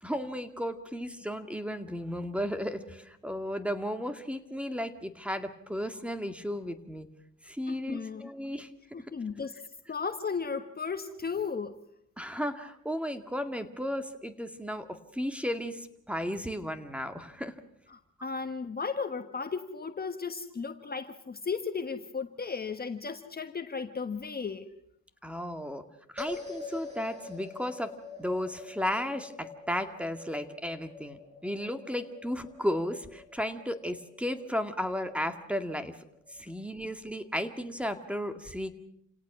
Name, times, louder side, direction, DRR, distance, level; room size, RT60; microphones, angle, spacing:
voice 1, 0.0-7.1 7.4-8.7 12.2-17.5 25.2-25.8 26.1-27.9 28.2-36.0 36.3-38.7, equal, 5° right, 2.0 m, -34 dB
voice 2, 7.7-8.3 8.9-9.6 9.9-11.8 17.9-24.7, left 5 dB, 30° left, 1.3 m, -35 dB
sound 1, 26.2-36.6, left 4 dB, 20° right, 6.5 m, -46 dB
28.5 x 17.5 x 6.1 m
cardioid pair, 90°, 30 cm